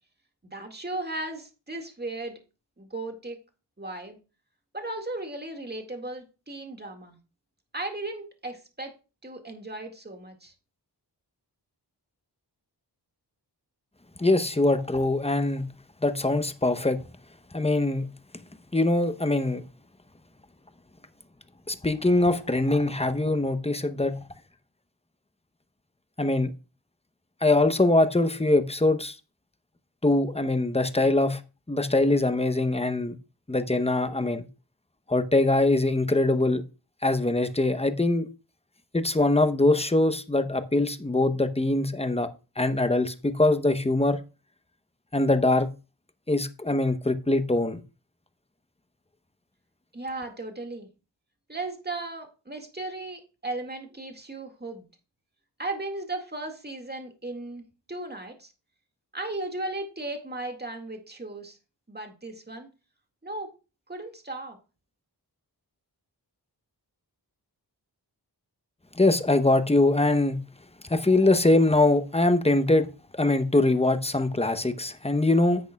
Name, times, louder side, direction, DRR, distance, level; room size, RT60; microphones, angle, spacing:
voice 1, 0.5-2.4 2.8-3.4 3.8-4.2 4.7-7.2 7.7-8.9 9.2-10.5 49.9-50.9 51.5-54.8 55.6-58.5 59.1-61.6 61.9-62.7 63.2-63.5 63.9-64.6, right 2 dB, 25° right, 2.0 m, -36 dB
voice 2, 14.2-15.7 16.0-17.0 17.5-18.1 18.7-19.6 21.7-24.2 26.2-26.5 27.4-29.2 30.0-31.4 31.7-33.2 33.5-34.4 35.1-36.6 37.0-38.3 38.9-42.3 42.6-44.2 45.1-45.7 46.3-47.8 68.9-70.4 70.8-72.9 73.1-75.6, left 2 dB, 15° left, 0.9 m, -23 dB
10.5 x 8.0 x 2.3 m
wide cardioid pair, 45°, 43 cm